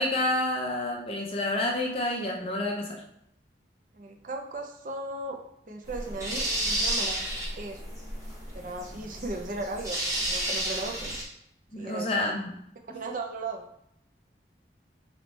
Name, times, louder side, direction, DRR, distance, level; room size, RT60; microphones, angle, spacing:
voice 1, 0.0-3.0 11.7-12.5 12.9-13.0, left 1 dB, 30° left, 0 dB, 0.7 m, -29 dB
voice 2, 3.9-5.4 5.7-7.8 8.5-11.2 11.8-12.1 12.8-13.6, right 2 dB, 45° right, 3 dB, 0.5 m, -37 dB
sound 1, 5.8-11.2, right 1 dB, 15° right, 0.9 m, -32 dB
4.1 x 3.2 x 3.2 m, 0.73 s
head